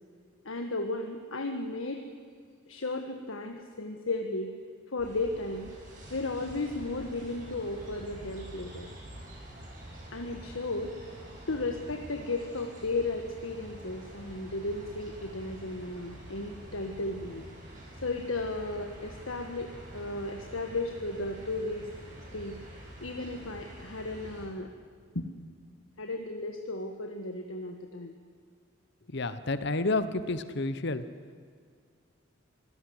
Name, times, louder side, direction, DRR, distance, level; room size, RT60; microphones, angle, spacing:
voice 1, 0.4-2.0 2.7-4.5 4.9-5.7 6.1-8.9 10.1-10.9 11.5-17.4 18.0-21.9 22.3-22.6 23.0-24.7 25.1-25.3 26.0-28.2, left 2 dB, 85° left, 4 dB, 1.6 m, -34 dB
sound 1, 5.0-24.5, right 1 dB, 40° right, 7.6 m, -47 dB
voice 2, 29.1-31.0, left 2 dB, 55° left, 12 dB, 1.1 m, -30 dB
25.0 x 17.0 x 8.0 m, 2.1 s
head